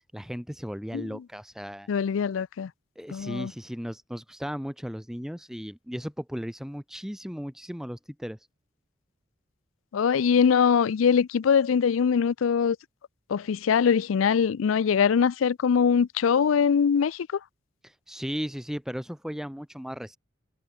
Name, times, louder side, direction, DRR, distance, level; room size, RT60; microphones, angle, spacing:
voice 1, 0.1-1.9 2.9-8.4 17.8-20.2, equal, 5° right, 1.7 m, -36 dB
voice 2, 0.9-1.2 1.9-2.7 3.1-3.5 9.9-12.8 13.3-17.3, left 6 dB, 90° left, 0.4 m, -22 dB
head